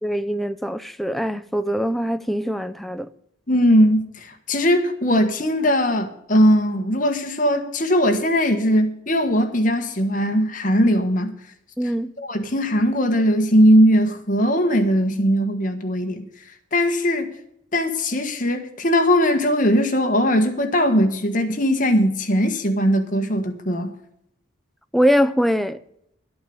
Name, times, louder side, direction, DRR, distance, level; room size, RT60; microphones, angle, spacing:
voice 1, 0.0-3.1 11.8-12.1 24.9-25.8, equal, ahead, 0.4 m, -22 dB
voice 2, 3.5-11.3 12.2-16.3 16.7-17.3 17.7-23.9, equal, 40° left, 1.6 m, -19 dB
12.5 x 8.7 x 7.0 m
head